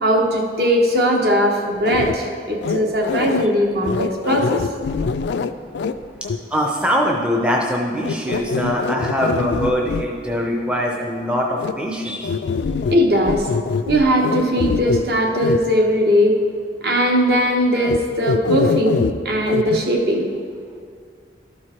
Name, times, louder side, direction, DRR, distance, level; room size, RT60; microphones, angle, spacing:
voice 1, 0.0-4.7 12.9-13.5 13.9-16.4 16.8-20.3, equal, 55° right, 1 dB, 1.1 m, -19 dB
sound 1, 1.8-2.2 2.6-3.5 3.8-5.9 6.2-6.4 8.0-10.0 11.6-11.7 12.2-13.0 13.2-15.0 15.3-15.6 17.8-18.0 18.2-19.1 19.5-19.8, left 5 dB, 70° left, 0.3 m, -23 dB
voice 2, 6.5-12.3, equal, 5° right, 0 dB, 0.5 m, -22 dB
12.5 x 4.7 x 4.3 m, 2.1 s
head